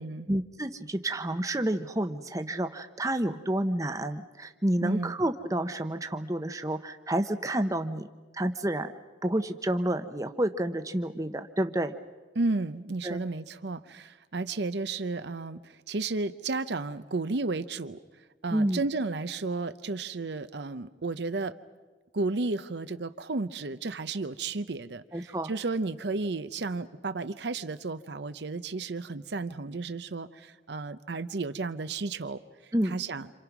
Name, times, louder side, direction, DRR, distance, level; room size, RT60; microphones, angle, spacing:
voice 1, 0.3-8.1 8.3-8.9 9.2-11.9 13.0-13.2 18.5-18.8 25.1-25.5 32.7-33.0, right 1 dB, 15° right, 8 dB, 0.8 m, -29 dB
voice 2, 4.8-5.1 12.3-18.0 18.4-21.5 22.1-33.3, right 3 dB, 65° right, 12 dB, 0.7 m, -33 dB
27.5 x 27.5 x 6.0 m, 1.3 s
head